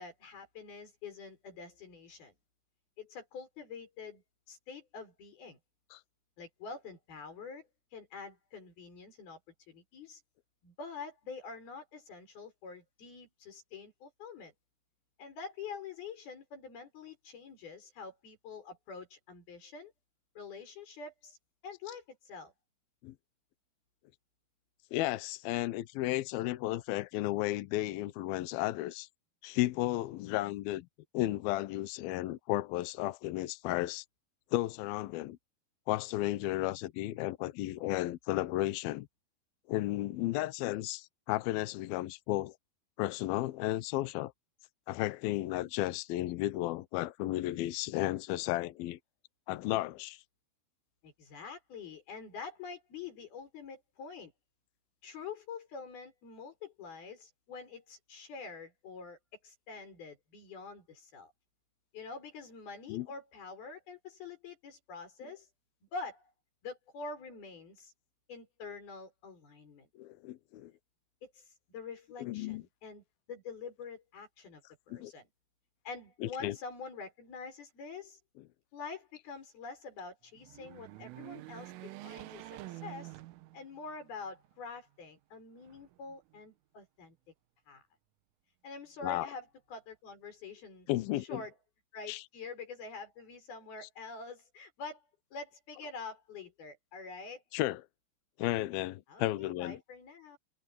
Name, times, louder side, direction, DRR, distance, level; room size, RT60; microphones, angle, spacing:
voice 1, 0.0-2.3 3.0-5.6 6.4-9.4 9.7-10.2 10.6-14.5 15.2-19.9 20.4-21.4 21.6-22.5 51.0-54.3 55.0-59.2 59.4-61.3 61.9-65.5 65.9-66.3 66.6-67.9 68.3-69.9 71.2-73.0 73.3-75.3 75.8-78.2 78.7-83.2 83.5-87.2 87.7-87.8 88.6-90.9 91.2-91.5 91.9-95.1 95.3-97.4 99.1-100.4, left 4 dB, 50° left, 8.2 m, -46 dB
voice 2, 24.9-29.1 29.4-30.9 31.1-34.0 34.5-35.4 35.9-39.1 39.7-42.6 43.0-44.3 44.9-49.0 49.5-50.2 62.9-63.1 70.0-70.7 72.2-72.6 74.9-75.1 76.2-76.6 89.0-89.3 90.9-91.4 92.1-92.2 97.5-97.8 98.4-99.8, left 16 dB, 85° left, 2.1 m, -33 dB
sound 1, 80.4-84.0 84.4-84.5 85.6-86.4, right 16 dB, 85° right, 3.8 m, -47 dB
omnidirectional pair, 5.6 m